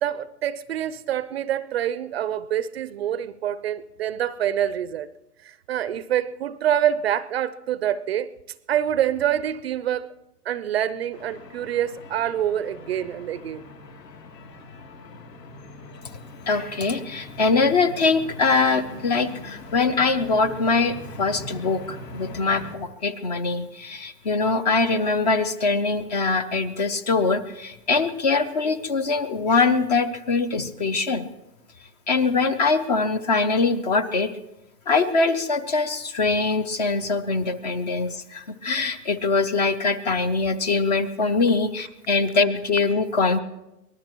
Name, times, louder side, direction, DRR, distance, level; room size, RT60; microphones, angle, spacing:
voice 1, 0.0-5.1 5.4-8.3 8.7-10.1 10.5-13.7, right 10 dB, 40° right, 0.5 m, -26 dB
sound 1, 11.1-22.8, left 2 dB, 85° left, 3.0 m, -42 dB
voice 2, 16.5-31.3 32.1-34.3 34.9-43.4, left 4 dB, 30° left, 0.5 m, -23 dB
24.0 x 19.0 x 3.0 m
hypercardioid pair, 140°, 48 cm